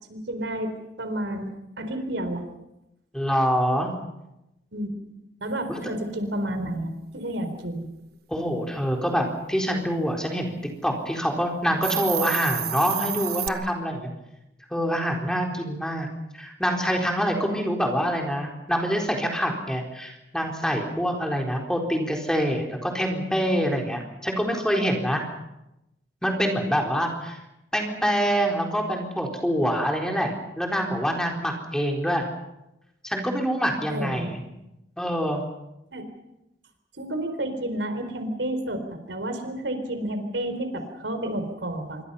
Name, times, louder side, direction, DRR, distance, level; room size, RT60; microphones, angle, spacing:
voice 1, 0.1-0.7 1.0-1.5 1.8-2.4 4.7-4.9 5.4-7.9 33.9-34.3 35.9-36.1 37.0-42.0, right 1 dB, 90° right, 8 dB, 4.2 m, -30 dB
voice 2, 3.1-3.9 5.7-5.9 8.3-10.6 10.8-14.1 14.7-16.1 16.3-25.2 26.2-27.4 27.7-32.2 33.0-34.4 35.0-35.4, equal, 5° left, 1 dB, 4.1 m, -25 dB
Hiss, 11.7-13.5, right 10 dB, 60° right, 1.2 m, -29 dB
26.5 x 24.0 x 5.6 m, 0.90 s
head